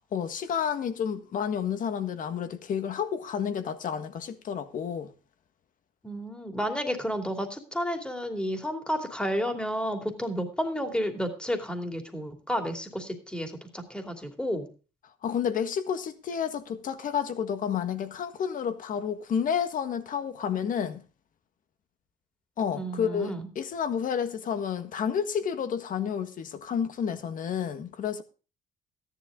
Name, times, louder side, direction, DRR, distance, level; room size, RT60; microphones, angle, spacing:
voice 1, 0.1-5.1 15.2-21.0 22.6-28.2, left 7 dB, 50° left, 1.6 m, -30 dB
voice 2, 6.0-14.7 22.7-23.5, equal, 5° left, 2.6 m, -31 dB
14.0 x 10.5 x 3.7 m
cardioid pair, 110°, 17 cm